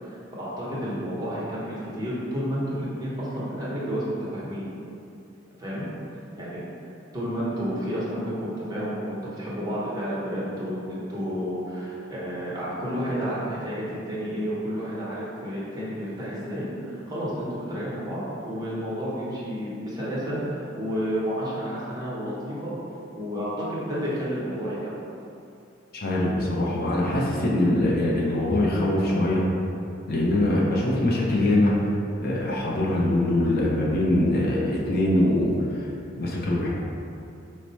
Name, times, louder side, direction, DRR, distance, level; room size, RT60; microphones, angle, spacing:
voice 1, 0.0-4.7 5.6-5.9 6.4-6.6 7.1-22.7 23.1-24.9, equal, 20° right, -8 dB, 1.0 m, -31 dB
voice 2, 26.0-29.4 30.1-31.9 32.2-35.9 36.2-36.7, left 1 dB, 55° left, -4 dB, 0.6 m, -23 dB
4.6 x 2.1 x 4.0 m, 2.6 s
head